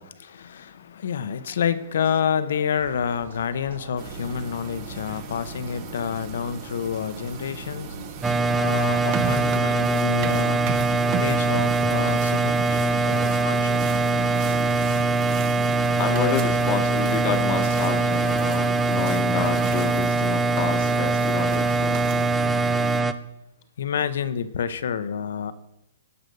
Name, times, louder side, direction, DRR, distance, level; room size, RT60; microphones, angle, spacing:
voice 1, 0.0-10.7 11.2-13.8 23.8-25.5, left 7 dB, 75° left, 14 dB, 0.7 m, -29 dB
sound 1, 2.8-18.4, right 3 dB, 90° right, 2.8 m, -43 dB
sound 2, 4.0-23.0, right 7 dB, 35° right, 0.8 m, -36 dB
sound 3, 8.2-23.1, right 3 dB, 10° right, 0.4 m, -22 dB
voice 2, 16.0-22.3, left 7 dB, 35° left, 8 dB, 1.0 m, -29 dB
11.0 x 5.1 x 6.6 m, 0.87 s
hypercardioid pair, 150°, 0 cm